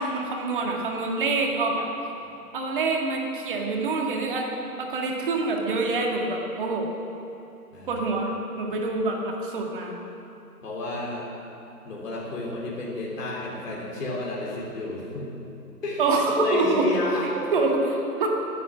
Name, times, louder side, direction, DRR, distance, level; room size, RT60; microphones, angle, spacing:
voice 1, 0.0-1.9 2.5-4.5 4.8-6.9 7.9-10.0 16.0-16.9 17.5-18.3, right 3 dB, 35° right, 0 dB, 1.9 m, -26 dB
voice 2, 10.6-11.3 11.8-15.3 15.8-16.0 16.4-17.3, left 2 dB, 55° left, -4 dB, 3.6 m, -30 dB
20.0 x 9.4 x 6.1 m, 2.9 s
hypercardioid pair, 165°, 47 cm